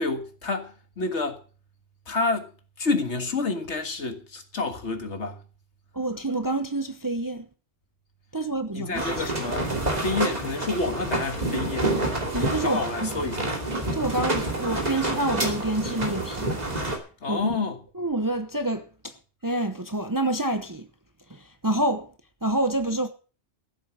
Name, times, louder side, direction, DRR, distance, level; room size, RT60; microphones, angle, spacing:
voice 1, 0.0-1.4 2.1-2.5 2.8-5.4 8.7-12.0 12.6-13.5 17.2-17.8, left 3 dB, 85° left, 2.1 m, -29 dB
voice 2, 5.9-7.5 8.3-9.2 12.3-13.1 13.9-16.6 17.3-17.5 18.0-19.1 19.4-20.9 21.6-22.1 22.4-23.1, right 2 dB, 20° right, 0.9 m, -27 dB
sound 1, 8.9-17.0, right 2 dB, 35° right, 2.9 m, -28 dB
14.0 x 8.3 x 6.3 m
omnidirectional pair, 1.1 m